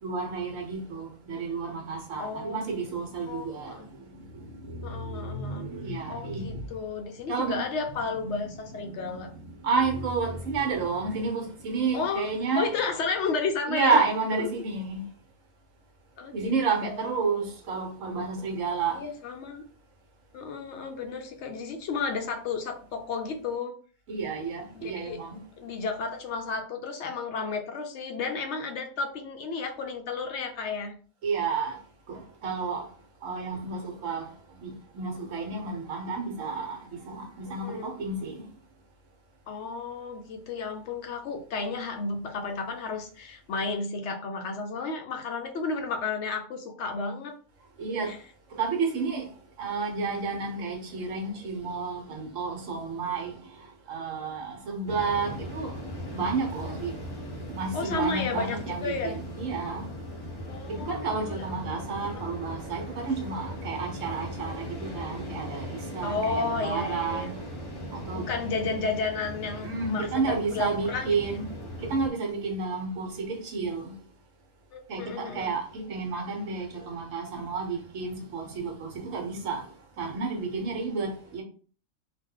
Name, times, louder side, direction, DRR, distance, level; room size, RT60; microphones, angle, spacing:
voice 1, 0.0-6.7 7.3-7.6 8.2-12.6 13.7-15.1 16.3-19.0 24.1-25.4 31.2-31.8 32.1-32.9 33.2-38.4 47.8-48.1 48.5-49.3 49.6-53.4 53.9-55.8 56.1-57.0 57.5-59.9 60.7-67.3 67.9-68.3 69.6-71.5 71.8-73.9 74.9-81.4, right 4 dB, 75° right, 1.2 m, -31 dB
voice 2, 2.2-2.7 3.3-3.9 4.8-5.7 6.1-9.3 11.9-12.3 12.6-14.0 14.4-14.5 16.2-16.5 16.8-17.3 18.9-19.7 20.3-23.7 24.7-25.2 25.6-30.9 37.6-37.9 39.5-47.3 48.0-48.2 56.6-56.7 57.7-59.2 60.5-61.6 62.1-62.2 66.0-67.3 68.1-71.1 74.7-75.5, left 4 dB, 65° left, 0.8 m, -32 dB
sound 1, 54.9-72.1, equal, 25° left, 0.6 m, -38 dB
2.5 x 2.2 x 3.6 m
omnidirectional pair, 1.4 m